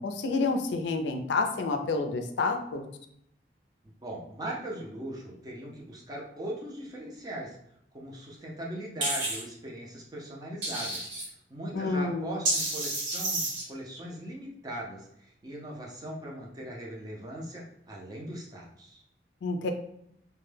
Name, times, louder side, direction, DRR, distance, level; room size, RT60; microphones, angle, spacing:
voice 1, 0.0-2.9 11.7-12.3 19.4-19.7, left 3 dB, 80° left, 5 dB, 0.4 m, -29 dB
voice 2, 4.0-7.6 7.9-11.1 11.5-19.0, right 1 dB, 20° right, -2 dB, 0.5 m, -39 dB
sound 1, 9.0-9.4 10.6-11.3 12.5-13.6, right 2 dB, 85° right, 0.9 m, -30 dB
2.2 x 2.1 x 3.2 m, 0.75 s
head